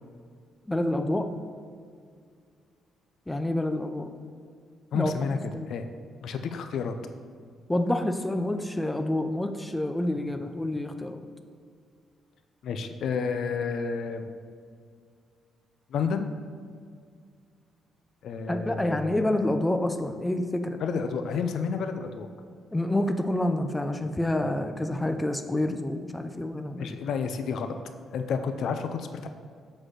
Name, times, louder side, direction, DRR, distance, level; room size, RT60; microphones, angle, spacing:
voice 1, 0.7-1.3 3.3-4.1 4.9-5.1 5.5-5.7 7.7-11.2 18.5-20.8 22.7-27.0, left 1 dB, 10° left, 7 dB, 0.5 m, -28 dB
voice 2, 4.9-5.4 5.7-5.9 6.2-6.9 12.6-14.3 15.9-16.3 18.2-19.4 20.8-22.3 26.8-27.7 28.1-29.3, left 6 dB, 70° left, 7 dB, 0.5 m, -30 dB
7.5 x 4.2 x 6.3 m, 2.1 s
cardioid pair, 90°, 0 cm